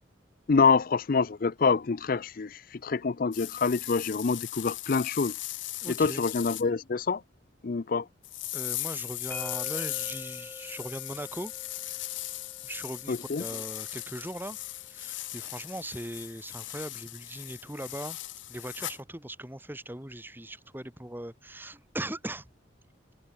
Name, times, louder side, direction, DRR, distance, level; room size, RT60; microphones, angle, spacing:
voice 1, 0.5-5.3 6.0-7.2 7.6-8.1 13.1-13.4, left 4 dB, 50° left, 0.5 m, -26 dB
sound 1, 3.3-6.6 8.2-19.0, left 16 dB, 85° left, 1.5 m, -38 dB
voice 2, 5.8-6.2 8.5-11.5 12.6-18.2 18.5-22.5, right 1 dB, 10° right, 2.5 m, -39 dB
sound 2, 9.3-15.1, left 1 dB, 10° left, 5.4 m, -48 dB
head